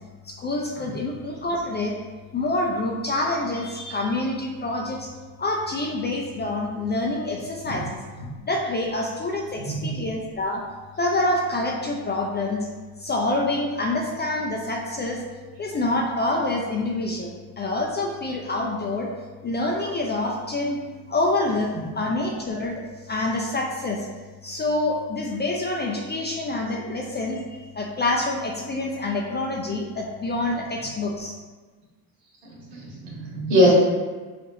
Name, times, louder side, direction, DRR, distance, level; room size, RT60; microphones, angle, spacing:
voice 1, 0.2-2.0 2.3-5.1 5.4-8.0 8.4-10.6 11.0-12.7 13.0-15.2 15.6-19.1 19.4-20.8 21.1-24.1 24.4-31.4, left 2 dB, 25° left, 0 dB, 0.3 m, -26 dB
voice 2, 9.6-10.0 21.7-21.8 32.7-33.7, equal, 75° right, -4 dB, 1.4 m, -22 dB
4.1 x 2.5 x 2.7 m, 1.3 s
supercardioid pair, 70°, 46 cm